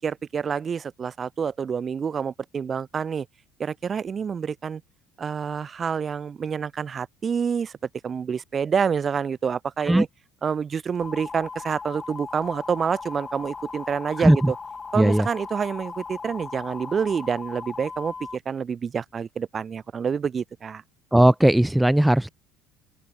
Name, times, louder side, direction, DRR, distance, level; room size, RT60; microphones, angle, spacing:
voice 1, 0.0-3.3 3.6-4.8 5.2-7.7 8.0-10.1 10.4-14.5 14.9-20.8, right 6 dB, 35° right, 4.4 m, -27 dB
sound 1, 11.0-18.4, left 4 dB, 25° left, 6.3 m, -38 dB
voice 2, 14.2-14.5 15.0-15.3 21.1-22.3, right 1 dB, 5° right, 2.5 m, -18 dB
open air
supercardioid pair, 110°, 0 cm